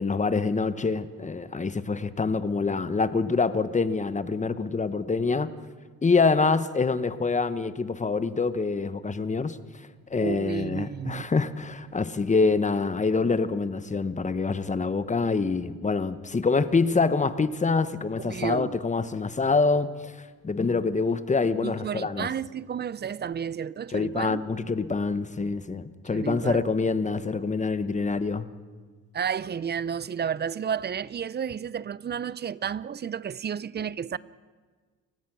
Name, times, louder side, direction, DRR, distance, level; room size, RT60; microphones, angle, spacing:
voice 1, 0.0-5.5 6.0-9.6 10.1-20.1 20.4-22.3 23.9-28.5, left 4 dB, 25° left, 1.1 m, -26 dB
voice 2, 10.2-11.3 18.2-18.7 21.6-24.4 26.1-26.6 29.1-34.2, right 7 dB, 35° right, 0.5 m, -32 dB
30.0 x 17.0 x 6.1 m
cardioid pair, 90°, 30 cm